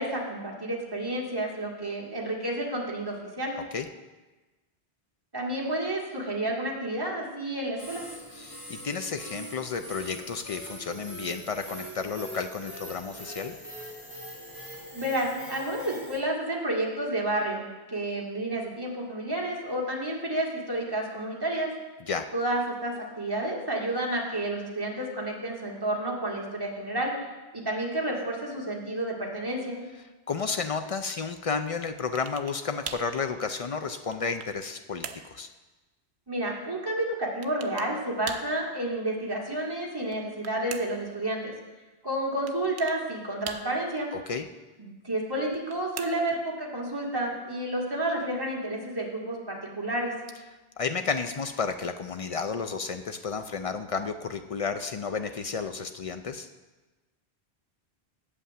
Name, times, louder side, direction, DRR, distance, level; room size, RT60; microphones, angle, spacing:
voice 1, 0.0-3.5 5.3-8.1 14.9-17.6 17.9-21.7 22.3-27.1 27.5-29.8 36.3-41.5 42.0-44.1 44.8-50.1, right 1 dB, 20° right, -3 dB, 1.8 m, -30 dB
sound 1, 7.8-16.2, equal, 15° left, 2.5 m, -42 dB
voice 2, 8.3-13.5 22.1-22.2 30.3-35.5 44.1-44.5 50.8-56.5, left 5 dB, 60° left, 8 dB, 0.3 m, -32 dB
sound 2, 32.2-32.6 32.9-33.1 33.8-34.6 35.0-35.3 37.4-37.9 38.3-38.6 40.0-41.1 42.5-43.0 43.5-44.0 45.4-46.4, right 7 dB, 75° right, 0.9 m, -41 dB
8.2 x 5.6 x 7.4 m, 1.2 s
omnidirectional pair, 1.1 m